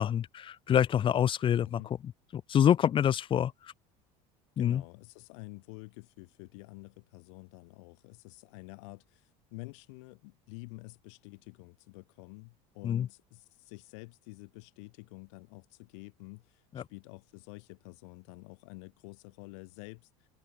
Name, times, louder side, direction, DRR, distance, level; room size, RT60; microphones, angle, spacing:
voice 1, 0.0-1.8 2.3-3.5 4.6-4.8 12.8-13.1 16.8-16.9, left 9 dB, 35° left, 2.1 m, -26 dB
voice 2, 1.6-1.9 4.6-20.3, left 29 dB, 80° left, 7.4 m, -49 dB
open air
cardioid pair, 140°, 15 cm